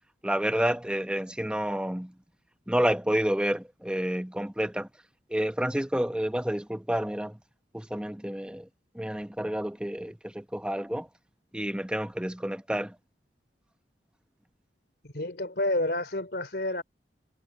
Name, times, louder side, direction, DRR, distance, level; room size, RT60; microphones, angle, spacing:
voice 1, 0.2-2.1 2.7-4.9 5.3-7.4 7.7-8.7 8.9-11.1 11.5-13.0, equal, 5° right, 0.8 m, -29 dB
voice 2, 15.0-16.8, left 1 dB, 65° left, 3.2 m, -29 dB
head